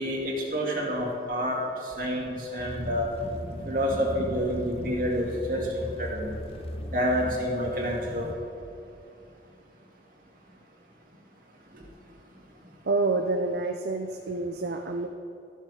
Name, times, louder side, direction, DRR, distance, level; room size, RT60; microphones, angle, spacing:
voice 1, 0.0-3.1 3.6-6.4 6.9-8.3 11.7-12.1 12.6-12.7, equal, 50° right, -3 dB, 2.0 m, -29 dB
sound 1, 2.6-8.3, left 1 dB, 35° left, 0.6 m, -38 dB
voice 2, 12.8-15.1, right 3 dB, 65° right, 4 dB, 0.5 m, -28 dB
12.5 x 6.5 x 4.8 m, 2.6 s
head